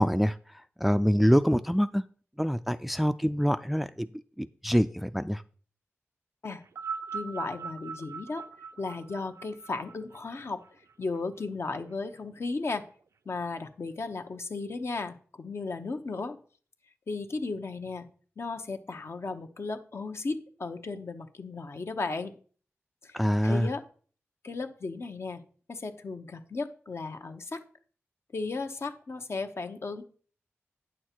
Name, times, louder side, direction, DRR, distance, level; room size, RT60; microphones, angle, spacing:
voice 1, 0.0-2.0 2.4-4.1 4.4-5.4 23.1-23.7, equal, ahead, 12 dB, 0.3 m, -25 dB
sound 1, 6.6-11.2 12.1-12.2, right 6 dB, 85° right, 0.5 m, -40 dB
voice 2, 7.1-8.4 8.8-10.6 11.0-12.8 13.3-16.4 17.1-18.1 18.4-22.3 23.0-23.8 24.4-25.4 25.7-27.6 28.3-30.0, left 3 dB, 60° left, 7 dB, 0.9 m, -35 dB
9.2 x 6.4 x 4.4 m, 0.43 s
wide cardioid pair, 80°, 5 cm